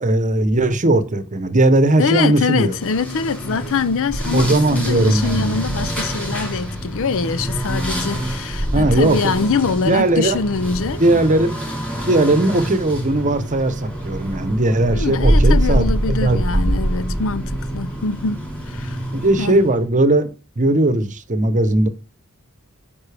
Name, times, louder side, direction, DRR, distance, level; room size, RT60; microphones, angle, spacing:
voice 1, 0.0-2.7 4.3-5.6 8.7-9.2 9.8-10.4 11.0-11.5 12.1-16.6 19.1-21.9, right 2 dB, 35° right, 0.9 m, -18 dB
voice 2, 2.0-11.0 14.9-19.0 19.4-19.6, left 5 dB, 65° left, 0.5 m, -23 dB
sound 1, 2.7-19.8, right 1 dB, 5° left, 3.7 m, -24 dB
9.6 x 5.3 x 3.4 m
head